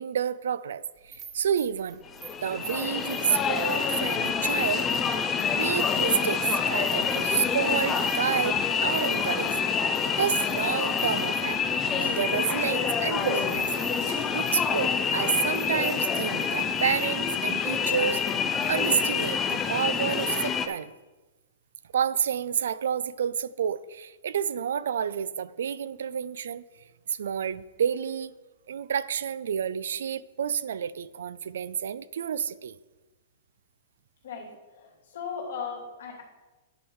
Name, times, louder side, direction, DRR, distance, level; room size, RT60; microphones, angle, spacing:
voice 1, 0.0-2.0 2.4-4.9 5.6-9.5 10.0-11.6 11.9-13.7 14.1-18.2 18.7-20.9 21.9-26.6 27.1-28.3 28.7-32.8, right 8 dB, 85° right, 18 dB, 0.4 m, -29 dB
sound 1, 1.0-6.2 6.6-8.3 8.7-18.9, right 3 dB, 15° right, 1.1 m, -48 dB
sound 2, 2.1-20.7, left 6 dB, 15° left, 0.5 m, -27 dB
voice 2, 34.2-36.2, left 6 dB, 75° left, -1 dB, 2.7 m, -37 dB
10.5 x 5.4 x 4.7 m, 1.2 s
supercardioid pair, 170°, 0 cm